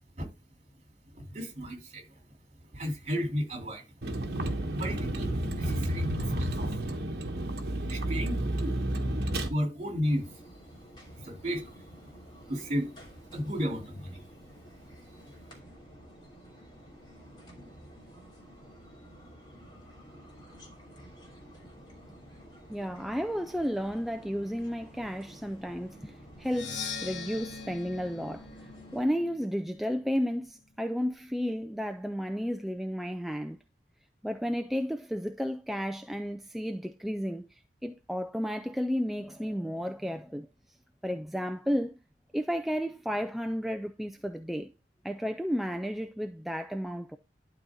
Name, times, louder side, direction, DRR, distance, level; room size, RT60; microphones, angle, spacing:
voice 1, 1.1-2.1 2.7-6.8 7.9-8.8 9.5-10.3 11.1-12.0 12.5-14.2, equal, 40° right, 3.1 m, -34 dB
Vehicle, 4.0-9.5, right 1 dB, 60° right, 1.2 m, -31 dB
sound 1, 10.0-29.1, equal, 25° left, 2.6 m, -51 dB
voice 2, 22.7-28.5 28.9-33.6 34.2-40.5 41.0-42.0 42.3-44.7 45.0-47.2, equal, ahead, 0.3 m, -32 dB
Percussion, 26.4-30.2, left 5 dB, 90° left, 1.3 m, -42 dB
11.5 x 4.1 x 3.7 m
head